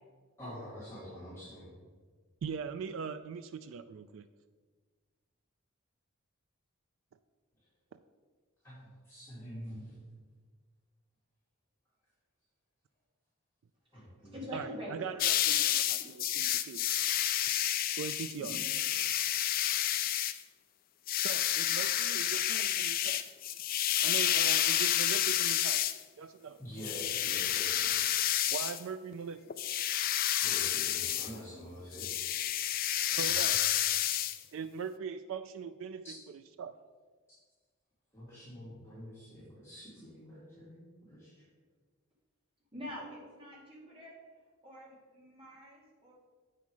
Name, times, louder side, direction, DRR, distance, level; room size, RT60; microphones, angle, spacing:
voice 1, 0.4-1.7 8.6-10.0 13.9-14.6 15.9-16.3 18.4-18.6 26.6-28.0 30.4-32.1 33.1-33.5 36.0-36.1 38.1-41.4, equal, 10° left, -12 dB, 2.4 m, -47 dB
voice 2, 2.4-4.3 14.5-16.9 18.0-18.6 21.2-23.3 24.0-25.9 26.2-26.6 28.5-29.4 33.1-33.6 34.5-36.0 36.6-36.8, right 6 dB, 65° right, 10 dB, 0.3 m, -40 dB
voice 3, 14.3-15.2 42.7-44.1 44.6-46.1, equal, 25° right, -5 dB, 2.3 m, -45 dB
sound 1, 15.2-20.4 21.1-26.0 26.8-28.8 29.5-31.3 31.9-34.4, left 12 dB, 40° left, 0.3 m, -30 dB
8.4 x 5.7 x 4.7 m, 1.5 s
head